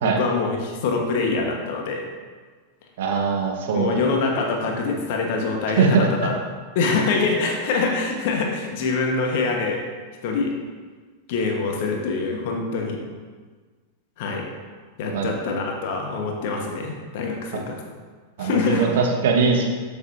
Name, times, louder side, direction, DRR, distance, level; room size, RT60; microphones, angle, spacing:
voice 1, 0.0-2.1 3.7-6.3 6.7-9.8 10.2-10.5 11.3-13.0 14.2-14.5 15.0-17.7 18.4-19.0, left 4 dB, 50° left, 1 dB, 1.6 m, -24 dB
voice 2, 3.0-4.0 5.8-6.1 15.1-15.3 18.4-19.6, right 5 dB, 55° right, 1 dB, 1.5 m, -21 dB
12.5 x 6.9 x 2.9 m, 1.5 s
figure-of-eight pair, 90°, 0 cm